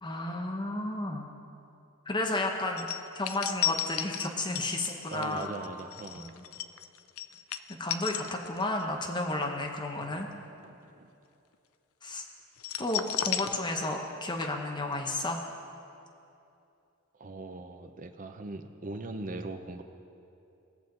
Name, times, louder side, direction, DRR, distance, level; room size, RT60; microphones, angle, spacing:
voice 1, 0.0-1.3 2.1-5.5 6.2-6.4 7.8-10.3 12.0-12.2 12.8-15.4, left 2 dB, 20° left, 2 dB, 0.9 m, -32 dB
sound 1, 2.8-8.8 9.2-9.4 12.6-14.1 14.4-14.5, left 10 dB, 75° left, 0.4 m, -34 dB
voice 2, 5.1-6.3 10.0-10.1 10.6-11.1 17.2-19.8, right 2 dB, 40° right, 7 dB, 0.6 m, -40 dB
19.0 x 7.1 x 3.9 m, 2.7 s
head